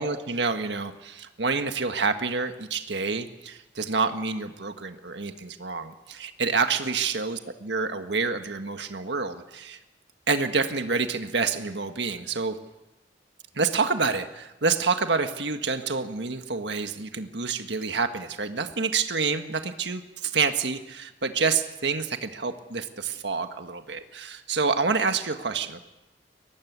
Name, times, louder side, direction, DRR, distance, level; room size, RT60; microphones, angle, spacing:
voice 1, 0.0-9.8 10.3-12.6 13.5-25.8, right 4 dB, 80° right, 7 dB, 1.6 m, -28 dB
23.0 x 18.5 x 8.2 m, 0.98 s
head